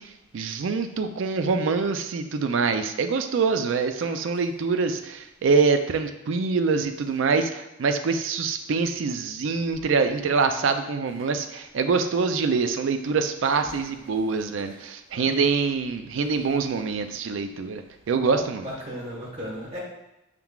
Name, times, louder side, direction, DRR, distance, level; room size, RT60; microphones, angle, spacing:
voice 1, 0.0-18.7, right 4 dB, 65° right, 8 dB, 0.4 m, -25 dB
voice 2, 15.1-15.5 18.2-19.8, equal, 30° right, -5 dB, 1.4 m, -36 dB
5.7 x 3.7 x 2.3 m, 0.91 s
head